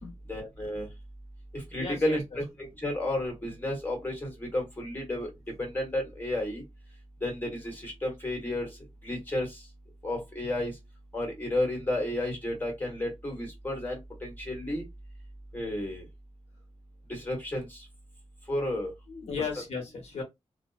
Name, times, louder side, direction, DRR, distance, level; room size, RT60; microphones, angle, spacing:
voice 1, 0.3-0.9 1.5-5.3 5.6-6.6 7.2-8.7 9.0-9.5 10.0-10.7 11.1-14.8 15.5-16.0 17.1-17.6 18.5-18.9, left 1 dB, 15° left, 1.2 m, -32 dB
voice 2, 1.8-2.2 19.1-20.2, left 5 dB, 70° left, 1.0 m, -35 dB
2.6 x 2.1 x 2.4 m
wide cardioid pair, 130°, 11 cm